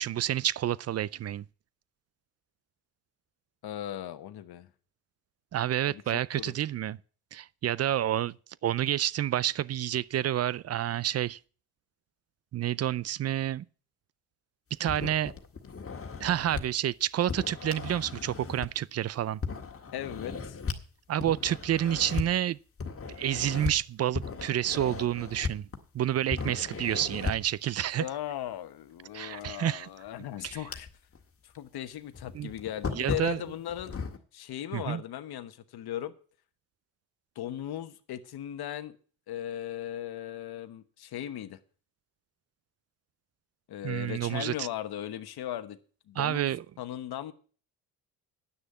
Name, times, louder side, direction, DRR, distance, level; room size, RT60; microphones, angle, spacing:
voice 1, 0.0-1.4 5.5-7.0 7.3-8.4 8.6-11.4 12.5-13.7 14.8-15.3 16.2-19.4 21.1-22.6 23.2-25.7 25.9-28.1 29.1-29.9 30.4-30.6 32.3-32.5 32.9-33.4 34.7-35.0 43.8-44.7 46.2-46.6, right 11 dB, 35° right, 0.4 m, -29 dB
voice 2, 3.6-4.7 5.9-6.0 6.4-6.5 19.9-20.6 28.0-30.9 31.4-34.0 34.3-36.1 37.3-38.9 39.3-41.6 43.7-45.8 46.1-46.5 46.8-47.3, left 11 dB, 60° left, 1.1 m, -37 dB
sound 1, 14.9-16.6 17.3-18.9 19.4-20.8 21.2-22.3 22.8-23.7 24.1-26.0 26.3-27.5 29.4-29.5 30.1-31.2 31.6-31.7 32.1-34.2, left 5 dB, 30° left, 1.8 m, -36 dB
9.7 x 6.4 x 8.3 m
supercardioid pair, 75°, 43 cm